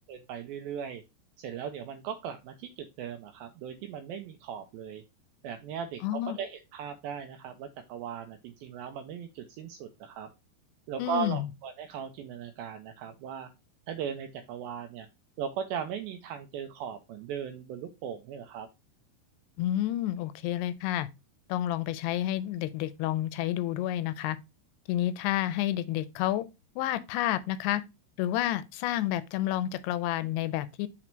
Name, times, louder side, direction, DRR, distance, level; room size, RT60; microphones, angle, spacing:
voice 1, 0.1-1.0 1.4-5.0 5.4-10.3 10.9-13.5 13.9-15.1 15.4-18.7, right 8 dB, 85° right, 2.1 m, -38 dB
voice 2, 6.0-6.4 11.0-11.4 19.6-21.1 21.5-24.4 24.9-26.5 26.8-27.8 28.2-30.9, left 13 dB, 85° left, 2.5 m, -30 dB
6.1 x 4.1 x 4.4 m
omnidirectional pair, 4.8 m